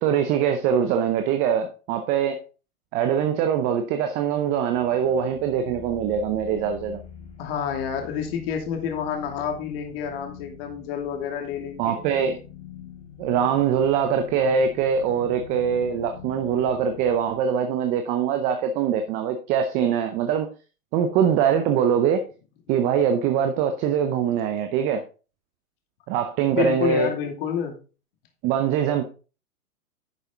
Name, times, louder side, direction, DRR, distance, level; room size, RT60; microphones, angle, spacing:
voice 1, 0.0-2.4 2.9-7.0 11.8-12.4 13.2-20.5 20.9-22.2 22.7-25.0 26.1-27.1 28.4-29.0, right 8 dB, 15° right, 0.6 m, -23 dB
sound 1, 4.7-17.4, left 7 dB, 15° left, 3.4 m, -45 dB
voice 2, 7.4-12.0 26.5-27.7, left 8 dB, 40° left, 2.7 m, -29 dB
10.5 x 6.5 x 3.8 m
hypercardioid pair, 130°, 45 cm